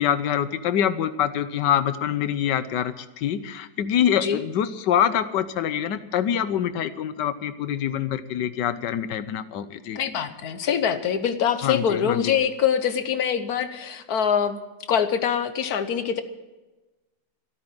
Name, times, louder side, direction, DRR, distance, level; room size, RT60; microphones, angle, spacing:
voice 1, 0.0-10.0 11.6-12.4, left 9 dB, 85° left, 13 dB, 1.5 m, -25 dB
voice 2, 9.9-14.6 14.9-16.2, left 8 dB, 60° left, 10 dB, 1.5 m, -24 dB
13.5 x 13.0 x 7.6 m, 1.1 s
omnidirectional pair, 1.9 m